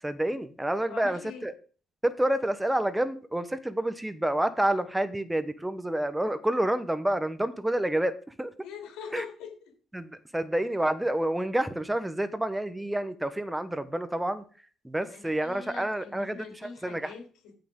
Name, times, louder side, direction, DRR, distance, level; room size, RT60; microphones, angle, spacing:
voice 1, 0.0-1.5 2.0-8.5 9.1-9.2 9.9-14.4 14.8-17.1, right 1 dB, 10° right, 12 dB, 0.9 m, -29 dB
voice 2, 0.9-1.5 8.6-9.7 15.0-17.5, left 6 dB, 90° left, 1 dB, 3.5 m, -43 dB
14.0 x 5.8 x 3.7 m, 0.40 s
cardioid pair, 85°, 0 cm